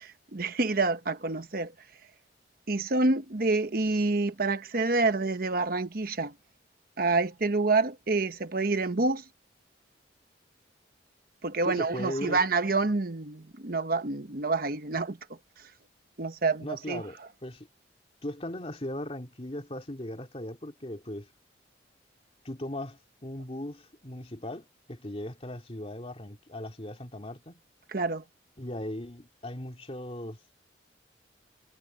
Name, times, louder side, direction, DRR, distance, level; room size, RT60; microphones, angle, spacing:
voice 1, 0.0-1.7 2.7-6.3 7.0-9.2 11.4-15.2 15.6-15.7 16.2-17.0 27.9-28.2, right 3 dB, 55° right, 1.1 m, -27 dB
voice 2, 11.6-12.4 16.6-17.7 18.2-21.3 22.4-27.6 28.6-30.4, left 1 dB, 35° left, 2.6 m, -38 dB
head